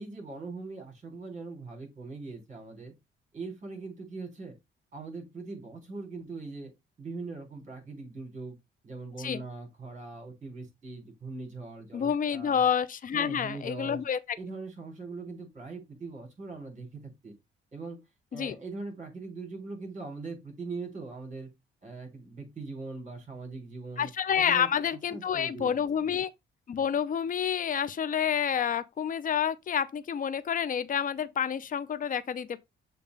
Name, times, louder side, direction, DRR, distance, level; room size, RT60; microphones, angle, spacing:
voice 1, 0.0-2.9 3.3-4.5 4.9-6.7 7.0-8.6 8.8-12.6 13.1-14.0 14.4-17.3 17.7-18.0 18.3-21.5 21.8-24.1 24.4-25.8, right 3 dB, 40° right, 4.2 m, -41 dB
voice 2, 11.9-14.4 18.3-18.6 24.0-26.3 26.7-32.6, left 8 dB, 45° left, 0.7 m, -29 dB
6.8 x 3.2 x 5.4 m
cardioid pair, 90°, 20 cm